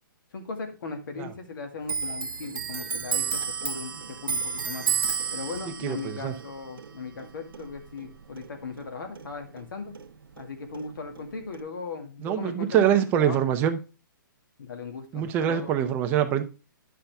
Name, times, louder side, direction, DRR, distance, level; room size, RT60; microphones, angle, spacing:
voice 1, 0.3-4.9 5.3-9.9 10.4-13.4 14.6-15.7, left 4 dB, 70° left, 5 dB, 2.1 m, -38 dB
Clock, 1.8-8.9 9.2-10.5 10.7-11.6, right 6 dB, 85° right, 0.8 m, -32 dB
voice 2, 5.8-6.3 12.2-13.8 15.1-16.4, right 9 dB, 15° right, 7 dB, 0.6 m, -24 dB
10.0 x 5.7 x 3.5 m, 0.32 s
hypercardioid pair, 160°, 11 cm